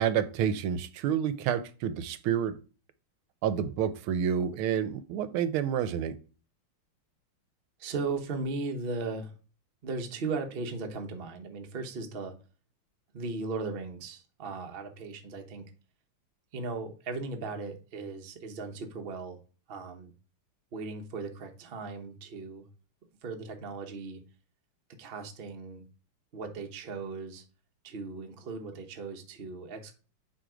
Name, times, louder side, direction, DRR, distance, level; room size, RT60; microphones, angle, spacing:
voice 1, 0.0-2.6 3.4-6.2, right 8 dB, 75° right, 13 dB, 1.4 m, -29 dB
voice 2, 7.8-9.3 9.8-12.3 13.1-15.7 16.5-19.4 19.7-20.1 20.7-22.7 23.2-24.2 25.0-25.8 26.3-27.4 27.8-29.9, right 3 dB, 45° right, 5 dB, 0.7 m, -37 dB
7.7 x 3.4 x 5.0 m, 0.36 s
omnidirectional pair, 2.4 m